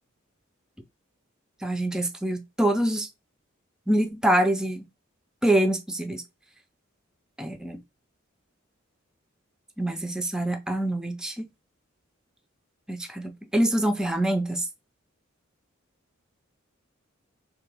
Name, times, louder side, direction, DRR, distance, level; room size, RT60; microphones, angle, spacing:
voice 1, 1.6-3.1 3.9-4.9 5.4-6.2 7.4-7.8 9.8-11.5 12.9-14.7, right 1 dB, 5° right, 0.3 m, -25 dB
3.3 x 2.1 x 3.4 m
head